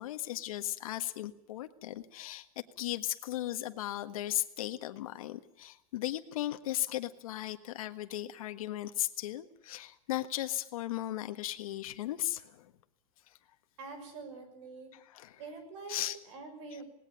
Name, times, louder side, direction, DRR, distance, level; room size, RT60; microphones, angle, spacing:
voice 1, 0.0-12.7 15.1-15.4 15.9-16.2 16.7-16.8, left 14 dB, 70° left, 9 dB, 1.6 m, -36 dB
voice 2, 13.8-14.9 15.4-16.0 16.3-16.8, right 4 dB, 55° right, 7 dB, 5.9 m, -45 dB
19.5 x 18.5 x 9.2 m, 0.74 s
supercardioid pair, 175°, 18 cm